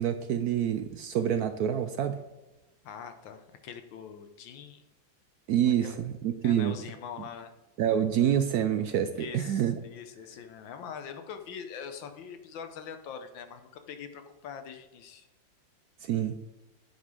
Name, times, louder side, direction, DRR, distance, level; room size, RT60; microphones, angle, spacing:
voice 1, 0.0-2.2 5.5-6.8 7.8-9.7 16.0-16.4, right 9 dB, 70° right, 8 dB, 0.9 m, -27 dB
voice 2, 2.8-4.8 5.6-6.0 6.4-7.5 9.1-15.3, left 7 dB, 85° left, 7 dB, 1.6 m, -43 dB
9.1 x 5.6 x 4.9 m, 1.1 s
omnidirectional pair, 2.0 m